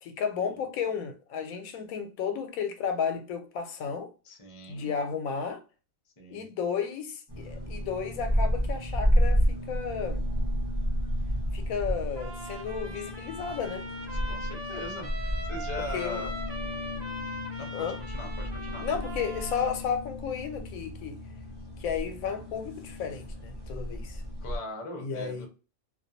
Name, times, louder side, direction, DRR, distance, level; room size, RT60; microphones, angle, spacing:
voice 1, 0.0-4.1 4.7-5.6 6.3-10.2 11.5-13.9 15.9-16.2 17.7-18.0 18.8-21.2 21.8-24.2 25.0-25.5, left 6 dB, 85° left, 1.0 m, -33 dB
voice 2, 4.2-4.9 6.2-6.5 14.3-16.3 17.6-18.9 24.4-25.5, left 2 dB, 30° left, 0.6 m, -40 dB
sound 1, 7.3-24.6, equal, 25° right, 0.6 m, -31 dB
Trumpet, 12.2-19.8, right 1 dB, 80° right, 1.2 m, -41 dB
2.4 x 2.2 x 2.6 m
omnidirectional pair, 1.4 m